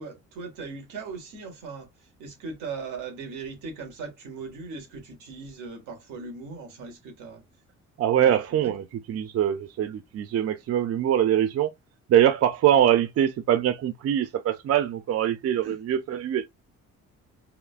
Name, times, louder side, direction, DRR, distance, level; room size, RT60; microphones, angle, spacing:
voice 1, 0.0-1.9 2.2-7.4 8.2-8.7 15.6-15.8, right 4 dB, 90° right, 1.5 m, -39 dB
voice 2, 8.0-11.7 12.1-16.5, right 10 dB, 55° right, 0.5 m, -23 dB
3.6 x 2.2 x 2.3 m
cardioid pair, 90°, 30 cm